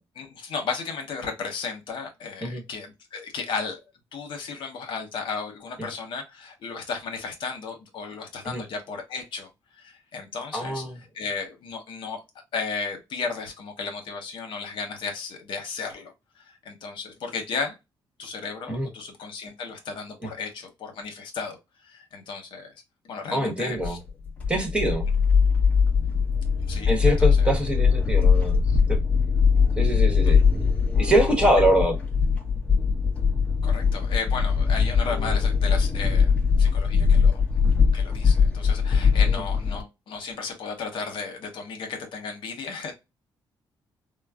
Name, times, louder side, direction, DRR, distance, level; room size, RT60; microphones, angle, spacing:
voice 1, 0.1-3.8 4.1-9.5 9.8-10.8 11.1-12.2 12.5-17.7 18.2-21.6 21.8-22.7 23.0-24.0 26.7-27.5 30.2-30.3 33.6-36.3 36.6-37.4 37.9-42.9, left 5 dB, 75° left, 0.9 m, -34 dB
voice 2, 10.5-11.0 18.7-18.9 23.3-24.0 24.5-25.0 26.9-29.0 29.8-30.4 31.0-32.0 39.3-39.4, right 1 dB, 15° right, 1.0 m, -24 dB
sound 1, 23.8-39.8, left 5 dB, 15° left, 0.9 m, -21 dB
3.7 x 2.0 x 2.3 m
cardioid pair, 110°, 9 cm